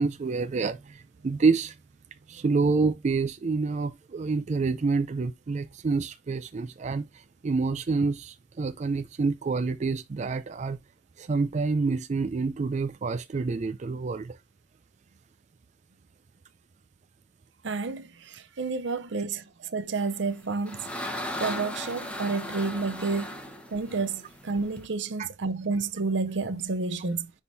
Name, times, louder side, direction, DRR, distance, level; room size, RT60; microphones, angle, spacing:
voice 1, 0.0-1.8 2.3-10.8 11.2-14.4 25.2-25.3, right 4 dB, 40° right, 0.4 m, -27 dB
voice 2, 17.6-20.9 21.4-23.4 23.7-27.3, right 4 dB, 75° right, 0.7 m, -30 dB
sound 1, 20.2-24.9, left 1 dB, 5° left, 1.1 m, -37 dB
10.0 x 3.6 x 2.6 m
head